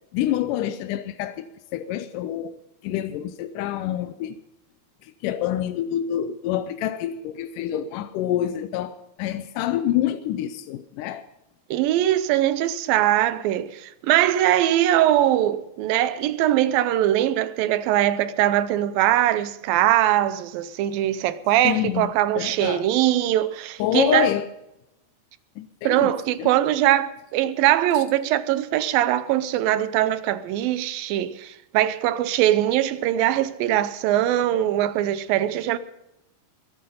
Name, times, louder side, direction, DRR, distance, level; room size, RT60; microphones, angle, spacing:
voice 1, 0.1-1.4 1.7-4.4 5.0-11.2 21.6-22.8 23.8-24.5 25.6-26.1 26.4-26.5 27.9-28.0, left 11 dB, 75° left, 2.0 m, -27 dB
voice 2, 11.7-24.3 25.8-35.8, right 13 dB, 80° right, 2.4 m, -21 dB
21.5 x 9.4 x 5.3 m
omnidirectional pair, 4.3 m